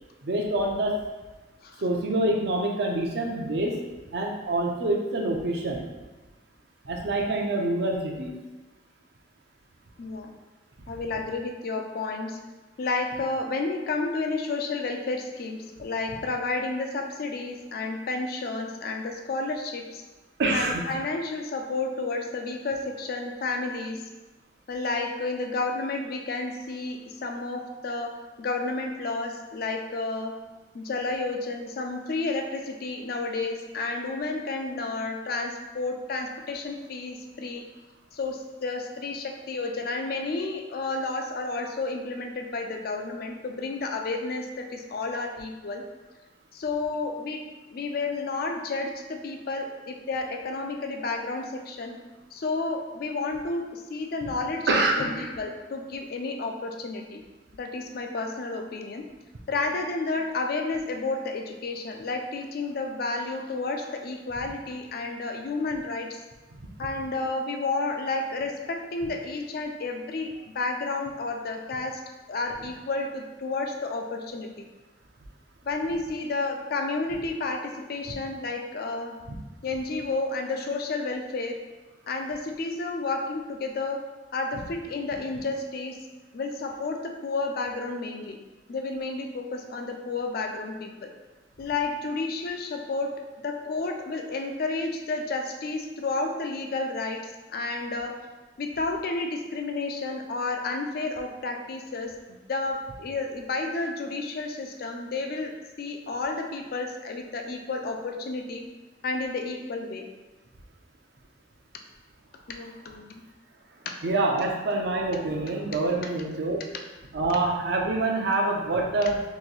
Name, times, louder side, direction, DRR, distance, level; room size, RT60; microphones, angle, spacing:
voice 1, 0.2-0.9 1.8-3.8 4.1-5.8 6.8-8.4 20.4-20.8 54.7-55.0 114.0-116.6 117.1-119.2, right 2 dB, 70° right, 1 dB, 0.6 m, -26 dB
voice 2, 10.0-10.3 10.9-12.4 12.8-20.0 20.5-24.1 24.7-30.4 30.7-37.6 38.1-45.8 46.5-52.0 52.3-57.2 57.6-59.1 59.5-66.2 66.8-72.0 72.3-74.5 75.6-79.2 79.6-81.6 82.1-84.0 84.3-86.0 86.3-88.4 88.7-91.1 91.6-93.2 93.4-97.2 97.5-98.2 98.6-105.5 105.8-108.6 109.0-110.0 112.5-113.2 113.9-114.0 114.7-114.9, left 3 dB, 60° left, 4 dB, 0.4 m, -31 dB
3.0 x 2.6 x 3.9 m, 1.2 s
head